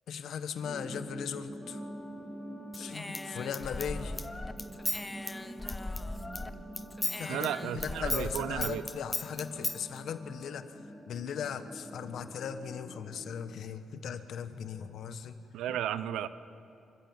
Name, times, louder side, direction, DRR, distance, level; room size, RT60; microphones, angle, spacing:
voice 1, 0.1-1.8 2.8-4.1 7.2-15.4, left 7 dB, 70° left, 11 dB, 1.2 m, -38 dB
sound 1, 0.6-13.3, equal, 15° right, 3.0 m, -46 dB
Brass instrument, 1.6-10.6, right 3 dB, 35° right, 6.2 m, -55 dB
Human voice / Scissors, 2.7-6.5 6.8-9.8, left 2 dB, 20° left, 1.0 m, -36 dB
voice 2, 7.3-8.8 15.5-16.3, right 11 dB, 85° right, 14 dB, 0.7 m, -34 dB
26.5 x 15.5 x 7.3 m, 2.6 s
cardioid pair, 75°, 0 cm